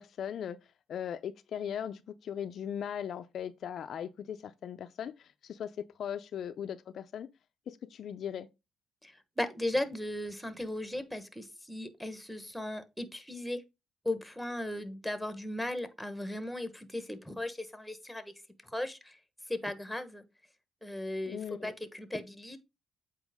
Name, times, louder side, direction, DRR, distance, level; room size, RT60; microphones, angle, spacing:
voice 1, 0.0-7.3 7.7-8.5 21.3-21.7, left 9 dB, 55° left, 0.5 m, -39 dB
voice 2, 9.0-13.6 14.0-18.3 18.6-19.2 19.5-20.2 20.8-22.6, left 1 dB, ahead, 1.1 m, -37 dB
8.1 x 4.6 x 3.5 m
cardioid pair, 115°, 0 cm